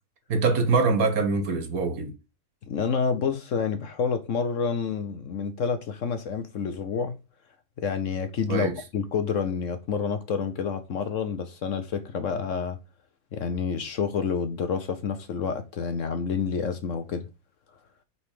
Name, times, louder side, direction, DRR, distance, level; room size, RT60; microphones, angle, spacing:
voice 1, 0.3-2.1 8.5-8.8, right 4 dB, 60° right, 1.7 m, -24 dB
voice 2, 2.7-7.1 7.8-12.8 13.3-17.2, left 6 dB, 60° left, 1.0 m, -28 dB
5.3 x 4.1 x 4.8 m
omnidirectional pair, 1.7 m